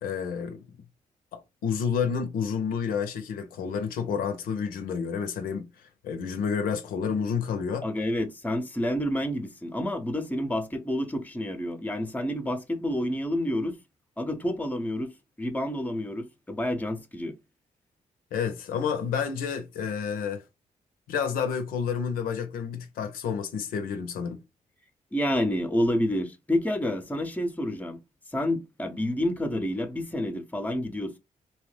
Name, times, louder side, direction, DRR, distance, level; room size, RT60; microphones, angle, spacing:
voice 1, 0.0-0.6 1.3-5.7 6.0-7.9 18.3-20.4 21.1-24.4, left 6 dB, 90° left, 0.5 m, -30 dB
voice 2, 7.8-13.8 14.2-15.1 15.4-17.3 25.1-28.0 28.3-31.2, left 1 dB, 10° left, 0.6 m, -29 dB
2.8 x 2.0 x 3.1 m
cardioid pair, 65°, 15 cm